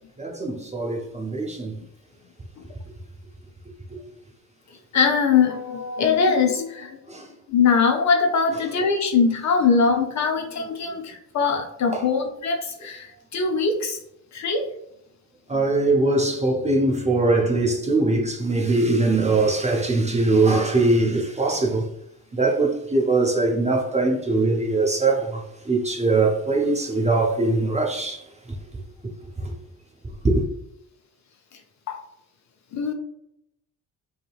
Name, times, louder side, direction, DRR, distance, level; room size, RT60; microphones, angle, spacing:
voice 1, 0.2-1.8 3.9-4.0 7.1-7.3 8.5-8.6 10.6-10.9 11.9-12.1 15.5-21.9 22.3-28.3 29.4-29.5 30.2-30.4, right 2 dB, 15° right, 0.5 m, -22 dB
voice 2, 4.9-7.0 7.5-13.1 13.3-14.0 14.3-14.7 31.9-32.0 32.7-32.9, left 5 dB, 40° left, 0.5 m, -22 dB
2.7 x 2.7 x 2.3 m
figure-of-eight pair, 40°, 47 cm